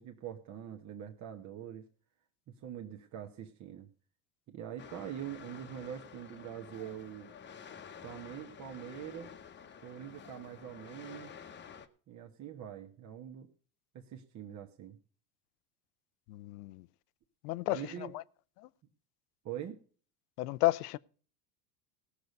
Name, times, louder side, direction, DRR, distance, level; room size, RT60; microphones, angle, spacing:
voice 1, 0.0-1.9 2.5-3.9 4.5-7.3 8.0-9.3 9.8-11.3 12.1-13.5 13.9-15.0 17.7-18.1 19.4-19.8, right 10 dB, 40° right, 1.2 m, -44 dB
sound 1, 4.8-11.9, left 7 dB, 25° left, 0.9 m, -51 dB
voice 2, 16.3-16.8 17.4-17.8 20.4-21.0, left 18 dB, 90° left, 0.6 m, -31 dB
16.5 x 6.7 x 5.2 m
supercardioid pair, 115°, 44 cm